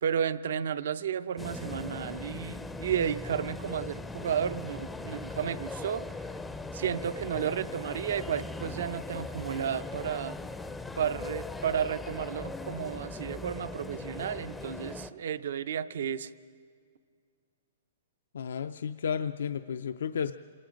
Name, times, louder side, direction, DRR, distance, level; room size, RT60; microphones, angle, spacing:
voice 1, 0.0-6.0 6.7-10.4 11.0-16.3, right 8 dB, 65° right, 14 dB, 0.6 m, -32 dB
sound 1, 1.4-15.1, left 3 dB, 5° left, 0.5 m, -39 dB
voice 2, 18.3-20.3, left 7 dB, 85° left, 10 dB, 0.5 m, -32 dB
27.0 x 20.0 x 5.1 m, 2.1 s
hypercardioid pair, 165°, 0 cm